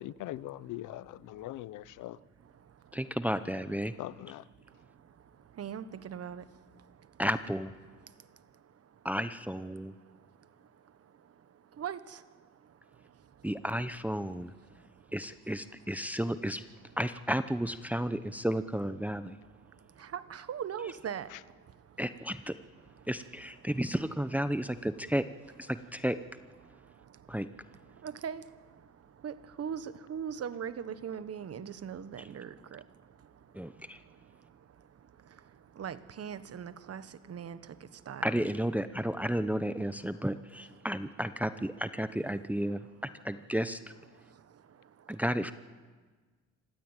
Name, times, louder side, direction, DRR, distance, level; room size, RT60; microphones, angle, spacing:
voice 1, 0.0-2.2 4.0-4.4, left 15 dB, 85° left, 0.7 m, -41 dB
voice 2, 2.9-3.9 7.2-7.7 9.0-9.9 13.4-14.5 15.1-16.6 17.0-19.4 22.0-22.6 23.1-25.2 25.6-26.2 27.3-27.5 33.5-34.0 38.2-42.8 43.2-43.8 45.1-45.5, equal, 5° right, 0.8 m, -32 dB
voice 3, 5.5-6.5 11.8-12.2 20.0-21.3 28.0-28.4 29.2-32.8 35.7-38.4, right 8 dB, 55° right, 1.3 m, -39 dB
26.0 x 15.5 x 9.0 m
cardioid pair, 90°, 30 cm